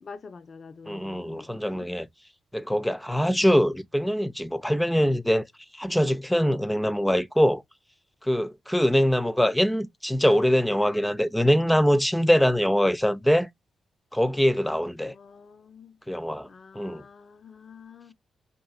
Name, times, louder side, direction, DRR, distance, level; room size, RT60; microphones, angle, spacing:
voice 1, 0.0-1.9 15.0-16.0 16.5-18.1, left 5 dB, 50° left, 0.6 m, -47 dB
voice 2, 0.9-2.1 2.5-5.5 5.7-7.6 8.2-13.5 14.1-15.1 16.1-16.5 16.7-17.0, equal, 5° left, 0.5 m, -23 dB
5.4 x 2.7 x 2.4 m
supercardioid pair, 45°, 0 cm